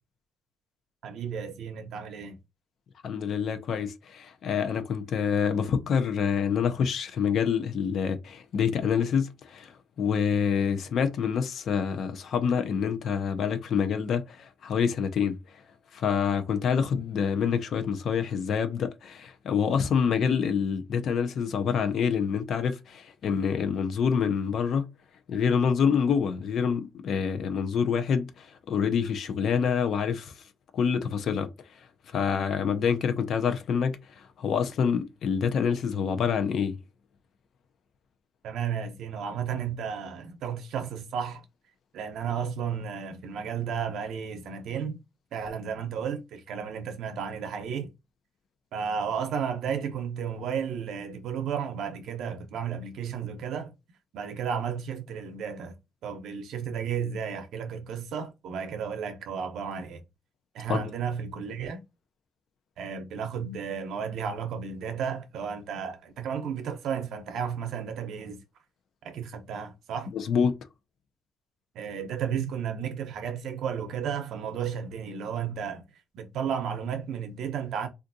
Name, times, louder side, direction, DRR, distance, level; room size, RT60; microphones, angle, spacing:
voice 1, 1.0-2.4 38.4-41.4 41.9-45.0 45.3-47.9 48.7-53.7 54.1-55.7 56.0-60.0 60.5-61.8 62.8-68.4 69.0-70.1 71.7-75.8 76.1-77.9, right 7 dB, 75° right, 0.7 m, -33 dB
voice 2, 3.0-15.6 15.9-24.9 25.3-30.4 30.7-31.5 31.8-36.8 60.7-60.9 70.1-70.6, left 6 dB, 55° left, 0.5 m, -27 dB
3.4 x 2.5 x 2.6 m
cardioid pair, 155°, 0 cm